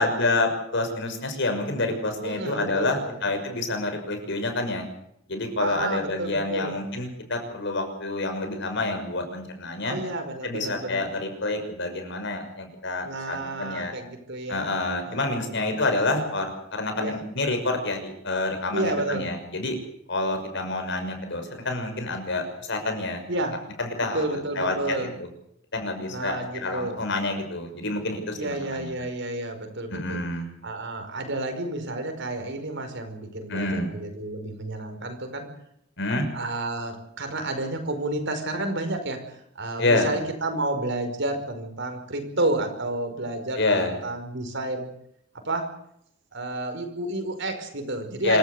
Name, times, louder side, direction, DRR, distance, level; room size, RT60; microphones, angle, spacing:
voice 1, 0.0-4.9 5.3-10.0 10.4-13.9 14.5-18.0 18.2-19.8 20.1-23.2 23.8-25.1 25.7-28.9 29.9-30.5 33.5-33.9 36.0-36.2 39.8-40.1 43.5-43.9 48.2-48.4, left 2 dB, 65° left, 6 dB, 6.0 m, -28 dB
voice 2, 2.2-3.2 5.6-6.8 9.8-11.0 13.0-14.7 15.0-15.8 17.0-17.1 18.7-19.3 23.3-23.6 24.1-25.2 26.1-27.0 28.3-30.2 30.6-35.5 36.3-44.9 45.4-45.7 46.3-48.4, right 2 dB, 65° right, 6 dB, 5.3 m, -31 dB
26.5 x 15.5 x 8.1 m, 0.74 s
head